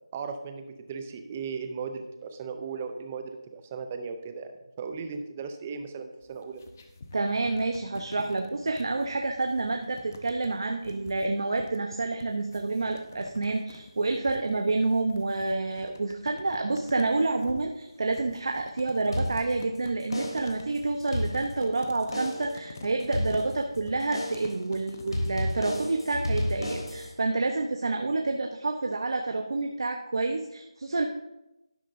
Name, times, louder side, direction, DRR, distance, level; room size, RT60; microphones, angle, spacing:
voice 1, 0.1-6.6, right 5 dB, 15° right, 7 dB, 0.5 m, -37 dB
sound 1, 6.2-25.3, left 3 dB, 30° left, 0.8 m, -47 dB
voice 2, 7.1-31.1, right 3 dB, 60° right, 4 dB, 0.8 m, -28 dB
sound 2, 19.1-19.8 20.1-20.6 21.0-21.8 22.1-22.6 23.1-23.8 24.1-24.6 25.1-27.1, left 1 dB, 90° left, 3.4 m, -32 dB
12.0 x 11.0 x 2.7 m, 0.93 s
figure-of-eight pair, 175°, 3 cm